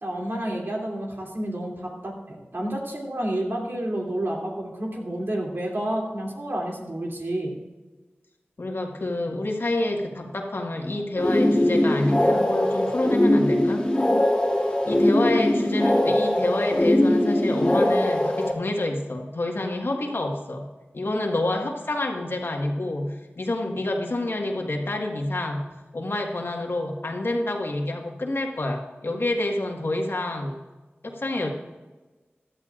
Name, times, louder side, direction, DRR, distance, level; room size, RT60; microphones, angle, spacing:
voice 1, 0.0-7.6, right 1 dB, 60° right, -2 dB, 2.9 m, -30 dB
voice 2, 8.6-13.8 14.9-30.6 31.0-31.5, left 2 dB, 60° left, 2 dB, 1.7 m, -28 dB
sound 1, 11.2-18.5, left 1 dB, 20° left, 2.6 m, -21 dB
16.0 x 12.0 x 2.5 m, 1.2 s
wide cardioid pair, 50°, 4 cm